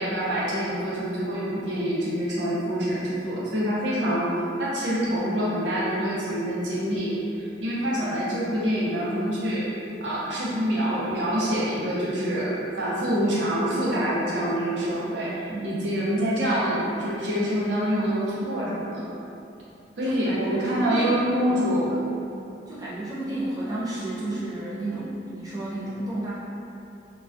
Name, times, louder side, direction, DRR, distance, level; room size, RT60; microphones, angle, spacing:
voice 1, 0.0-9.7 10.0-19.1 20.0-21.9, equal, 75° right, -7 dB, 0.6 m, -26 dB
voice 2, 20.0-22.1 22.7-26.3, right 1 dB, 20° right, -9 dB, 0.3 m, -32 dB
2.2 x 2.2 x 2.4 m, 2.7 s
head